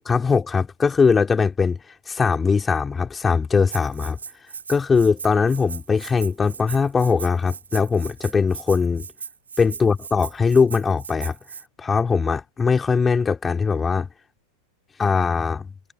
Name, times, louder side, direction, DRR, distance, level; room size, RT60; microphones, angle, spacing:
voice 1, 0.1-1.8 2.1-4.2 4.7-9.1 9.6-11.4 11.8-14.1 15.0-15.7, left 5 dB, 15° left, 4.6 m, -20 dB
Rattle (instrument), 3.7-11.6, right 6 dB, 70° right, 4.2 m, -38 dB
figure-of-eight pair, 90°, 0 cm